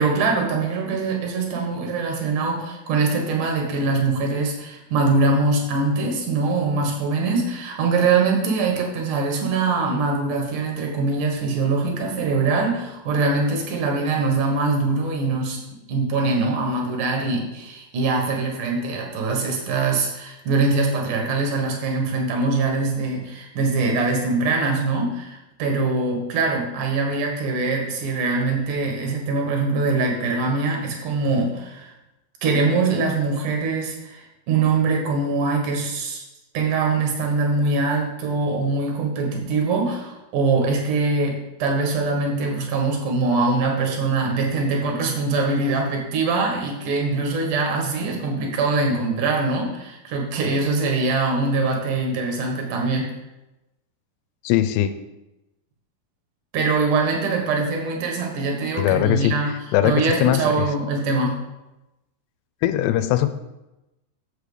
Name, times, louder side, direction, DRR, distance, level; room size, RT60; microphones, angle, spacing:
voice 1, 0.0-15.6 15.9-31.9 32.4-36.2 36.5-53.1 56.5-59.5 59.8-61.4, right 3 dB, 60° right, 1 dB, 2.5 m, -23 dB
voice 2, 54.4-54.9 58.8-59.9 60.2-60.4 62.6-63.3, left 12 dB, 80° left, 10 dB, 2.5 m, -20 dB
7.8 x 6.8 x 5.0 m, 0.97 s
omnidirectional pair, 5.2 m